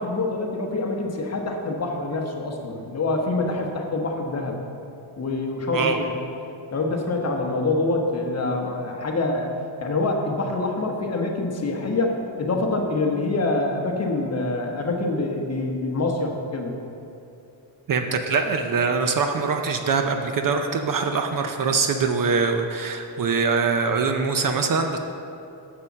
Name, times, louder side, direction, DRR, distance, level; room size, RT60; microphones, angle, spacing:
voice 1, 0.0-4.6 5.2-6.1 6.7-9.5 9.8-16.7, left 2 dB, 30° left, 1 dB, 1.1 m, -25 dB
voice 2, 5.7-6.0 17.9-25.0, right 4 dB, 45° right, 5 dB, 0.6 m, -23 dB
6.9 x 6.7 x 7.2 m, 2.7 s
cardioid pair, 150°, 47 cm